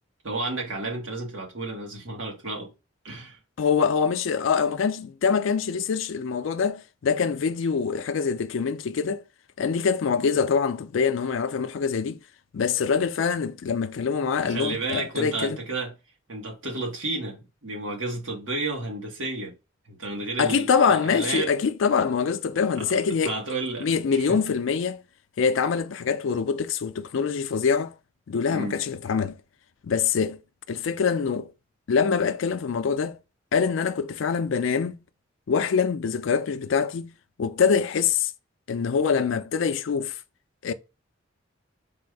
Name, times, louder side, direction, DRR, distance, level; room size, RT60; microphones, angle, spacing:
voice 1, 0.2-2.7 3.0-3.4 14.4-15.9 16.3-19.5 19.8-21.5 22.8-24.4 28.5-28.8, right 2 dB, 70° right, 1.5 m, -32 dB
voice 2, 3.6-9.2 9.6-12.2 12.5-15.6 20.4-23.4 23.8-25.0 25.4-27.9 28.3-29.4 29.8-30.4 30.7-31.5 31.9-33.2 33.5-35.0 35.5-37.1 37.4-38.3 38.7-40.2 40.6-40.7, left 6 dB, 70° left, 0.4 m, -24 dB
4.1 x 2.6 x 4.7 m
head